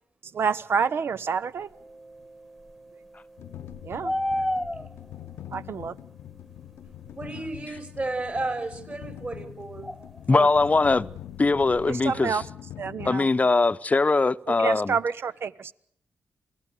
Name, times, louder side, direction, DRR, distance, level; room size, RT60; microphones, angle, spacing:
voice 1, 0.3-1.7 3.8-4.5 5.5-5.9 10.3-10.5 11.9-12.4 12.8-13.3 14.5-15.7, right 6 dB, 65° right, 1.0 m, -28 dB
Mallet percussion, 1.7-8.1, right 2 dB, 85° right, 7.2 m, -55 dB
sound 1, 3.4-13.1, left 11 dB, 80° left, 0.8 m, -43 dB
sound 2, 3.6-5.2 7.6-7.7 9.8-10.2 10.6-10.7 10.9-11.9, left 1 dB, ahead, 1.5 m, -29 dB
voice 2, 7.1-9.9, right 2 dB, 40° right, 6.0 m, -32 dB
voice 3, 10.3-11.1 11.4-12.4 13.0-14.9, left 3 dB, 35° left, 0.8 m, -21 dB
27.5 x 17.5 x 6.8 m
supercardioid pair, 40°, 4 cm